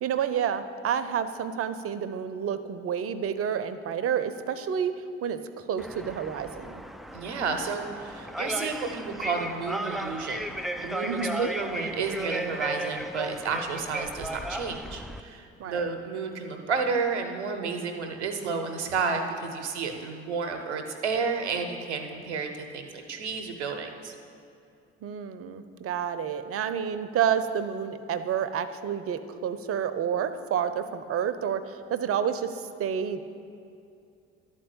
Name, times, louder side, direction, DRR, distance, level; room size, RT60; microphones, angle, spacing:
voice 1, 0.0-4.9 5.2-6.8 11.0-11.5 15.6-15.9 25.0-33.2, right 8 dB, 45° right, 12 dB, 0.7 m, -29 dB
sound 1, 5.8-15.2, equal, ahead, 0.3 m, -35 dB
voice 2, 7.1-24.1, right 5 dB, 90° right, 5 dB, 0.8 m, -31 dB
11.5 x 4.5 x 7.9 m, 2.5 s
hypercardioid pair, 55°, 33 cm